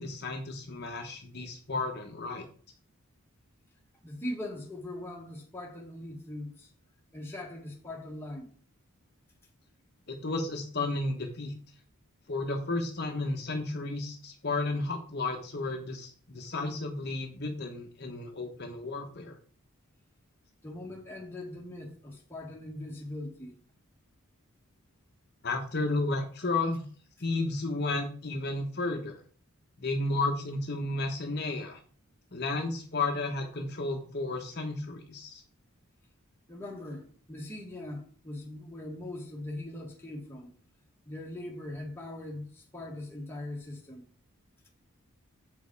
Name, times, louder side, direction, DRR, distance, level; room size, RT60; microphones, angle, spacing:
voice 1, 0.0-2.5 10.1-11.5 12.3-19.4 25.4-26.8 27.2-29.2 29.8-31.8 32.3-35.4, left 2 dB, 45° left, 1.1 m, -33 dB
voice 2, 4.0-6.7 7.1-8.5 20.6-23.5 36.5-40.5 41.0-44.0, left 1 dB, 10° left, 1.7 m, -41 dB
7.5 x 5.3 x 4.6 m
head